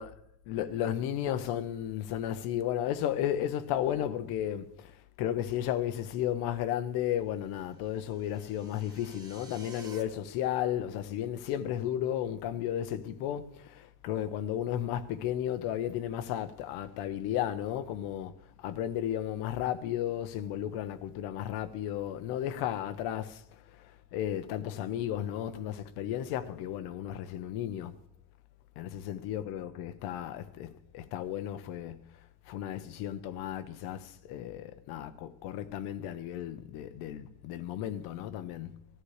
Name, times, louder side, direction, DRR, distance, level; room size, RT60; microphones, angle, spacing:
voice 1, 0.5-27.9 28.8-32.2 32.5-38.9, left 11 dB, 75° left, 1.0 m, -34 dB
sound 1, 7.5-10.0, right 2 dB, 10° right, 1.5 m, -52 dB
18.5 x 13.0 x 3.3 m
cardioid pair, 170°, 38 cm